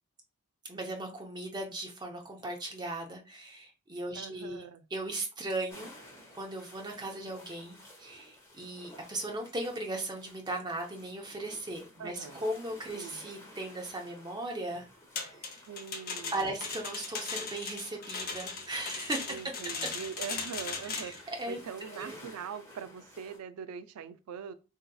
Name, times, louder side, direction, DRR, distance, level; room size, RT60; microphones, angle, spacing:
voice 1, 0.7-5.9 6.3-14.9 15.4-15.6 16.3-19.4 20.8-21.6 21.9-22.2, right 1 dB, 20° right, 0.6 m, -37 dB
voice 2, 4.1-4.8 12.0-12.4 12.9-13.2 15.7-16.6 19.3-24.5, right 7 dB, 85° right, 0.4 m, -42 dB
sound 1, 5.7-23.4, left 1 dB, 10° left, 0.8 m, -54 dB
sound 2, 15.2-21.2, left 5 dB, 40° left, 0.6 m, -38 dB
3.7 x 2.8 x 2.2 m
head